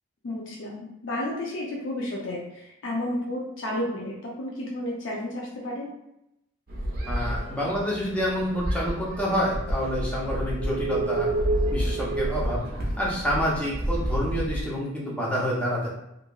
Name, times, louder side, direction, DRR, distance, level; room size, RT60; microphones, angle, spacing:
voice 1, 0.2-5.9, left 1 dB, 65° left, -3 dB, 0.5 m, -32 dB
sound 1, 6.7-14.6, right 1 dB, 45° right, 0.5 m, -29 dB
voice 2, 7.1-11.3 11.7-12.6 13.0-15.9, equal, 5° left, -5 dB, 0.5 m, -28 dB
2.8 x 2.5 x 2.2 m, 0.85 s
head